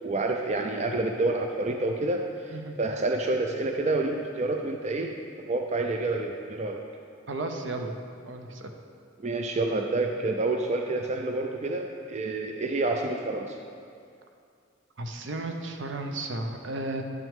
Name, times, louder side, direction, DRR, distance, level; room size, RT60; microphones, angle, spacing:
voice 1, 0.0-5.1 5.5-6.8 9.2-13.6, right 2 dB, 35° right, 3 dB, 0.4 m, -28 dB
voice 2, 7.3-8.0 8.3-8.7 15.0-17.0, right 2 dB, 70° right, 4 dB, 0.7 m, -34 dB
11.0 x 5.9 x 3.6 m, 2.3 s
head